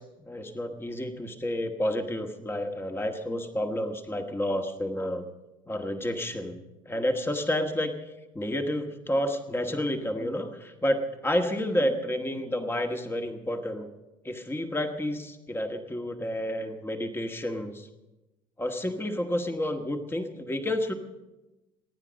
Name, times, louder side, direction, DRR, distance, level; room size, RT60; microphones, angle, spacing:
voice 1, 0.0-5.2 5.7-6.6 6.8-8.0 8.3-13.9 14.2-17.9 18.6-20.9, left 1 dB, 15° left, 4 dB, 1.6 m, -30 dB
26.0 x 9.9 x 5.3 m, 1.0 s
hypercardioid pair, 65°, 17 cm